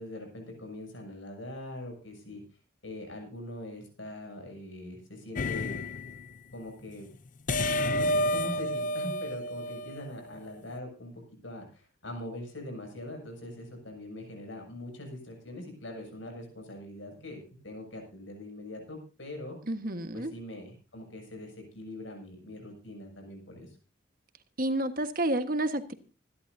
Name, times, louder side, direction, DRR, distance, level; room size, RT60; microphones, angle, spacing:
voice 1, 0.0-2.4 2.8-5.8 6.5-7.1 7.6-19.6 20.1-23.8, left 1 dB, 85° left, 3 dB, 7.1 m, -42 dB
sound 1, 5.4-6.3 7.5-10.3, left 1 dB, 45° left, 0.6 m, -30 dB
voice 2, 19.7-20.3 24.6-25.9, right 1 dB, 50° right, 8 dB, 1.5 m, -30 dB
26.0 x 11.5 x 2.7 m, 0.31 s
head